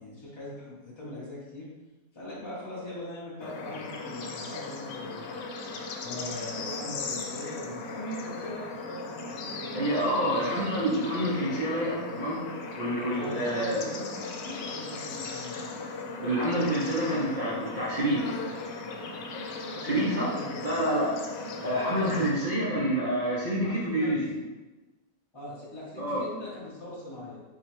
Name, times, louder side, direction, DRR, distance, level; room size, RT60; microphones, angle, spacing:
voice 1, 0.0-1.7 2.1-5.4 6.0-10.4 13.0-15.6 19.7-20.7 23.6-24.2 25.3-27.4, left 1 dB, 30° left, -8 dB, 0.5 m, -41 dB
Bird / Insect / Frog, 3.4-22.3, left 3 dB, 85° left, 1.2 m, -37 dB
voice 2, 9.7-12.4 12.8-13.8 16.2-18.2 19.8-20.3 20.6-21.1 21.6-24.2 26.0-26.2, right 1 dB, 55° right, -6 dB, 0.5 m, -27 dB
4.2 x 3.1 x 3.0 m, 1.2 s
omnidirectional pair, 1.8 m